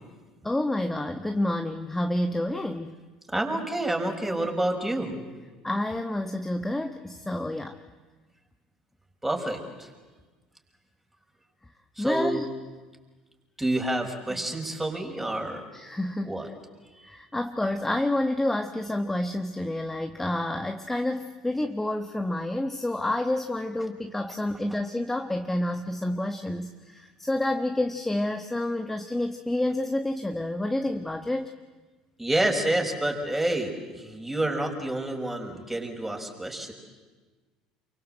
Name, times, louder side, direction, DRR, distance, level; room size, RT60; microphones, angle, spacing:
voice 1, 0.4-3.0 5.6-7.8 12.0-12.4 15.7-16.4 17.0-31.5, left 1 dB, 10° left, 6 dB, 1.4 m, -29 dB
voice 2, 3.3-5.2 9.2-9.9 12.0-12.4 13.6-15.6 16.2-16.5 16.9-17.1 32.2-36.7, right 1 dB, 10° right, 3 dB, 5.7 m, -28 dB
29.0 x 24.0 x 7.9 m, 1.3 s
figure-of-eight pair, 65°, 3 cm